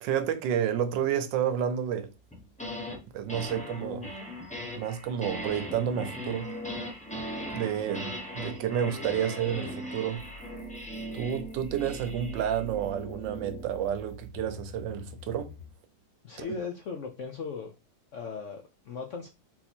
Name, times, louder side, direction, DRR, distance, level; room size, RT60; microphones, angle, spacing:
voice 1, 0.0-2.1 3.1-4.1 4.8-6.5 7.5-10.2 11.1-15.5 16.4-16.5, right 9 dB, 80° right, 1.3 m, -30 dB
sound 1, 2.3-3.0 3.3-13.7, equal, 5° left, 0.6 m, -39 dB
sound 2, 10.2-15.7, right 2 dB, 40° left, 1.3 m, -46 dB
voice 2, 16.2-17.7 18.1-19.3, left 5 dB, 75° left, 0.6 m, -37 dB
4.0 x 2.8 x 4.2 m
omnidirectional pair, 2.0 m